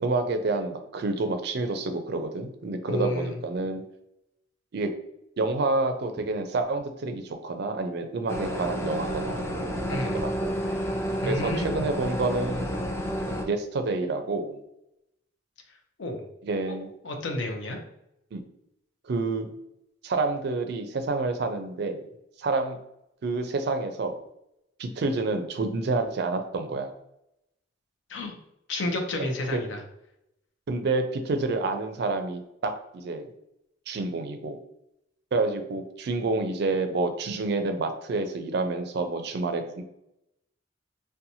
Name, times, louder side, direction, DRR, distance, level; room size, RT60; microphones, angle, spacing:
voice 1, 0.0-3.8 4.7-4.9 5.4-9.5 10.0-10.5 11.3-12.9 13.5-14.6 16.4-16.9 18.3-18.4 19.0-19.5 20.0-22.0 22.4-22.8 23.2-24.2 24.8-26.9 29.5-29.6 30.7-33.3 33.9-34.6 35.3-39.8, right 3 dB, 60° right, 7 dB, 0.4 m, -28 dB
voice 2, 2.9-3.4 9.9-10.2 11.2-11.9 16.0-16.2 16.7-16.8 17.0-17.8 28.1-28.3 28.7-29.8, left 1 dB, 75° left, 3 dB, 0.5 m, -30 dB
sound 1, 8.3-13.5, equal, 15° left, 0.3 m, -30 dB
2.7 x 2.2 x 2.6 m, 0.82 s
head